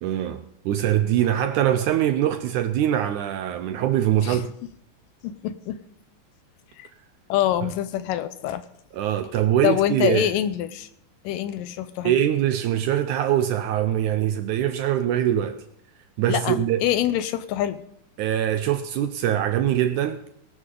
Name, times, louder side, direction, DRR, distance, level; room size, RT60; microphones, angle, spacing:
voice 1, 0.0-4.5 8.9-10.2 12.0-15.6 16.2-16.8 18.2-20.2, right 11 dB, 80° right, 1.8 m, -23 dB
voice 2, 5.2-5.8 6.8-6.9 7.3-8.6 9.6-10.9 11.2-12.1 16.3-17.8, left 12 dB, 80° left, 2.3 m, -25 dB
18.5 x 12.5 x 3.8 m
omnidirectional pair, 4.0 m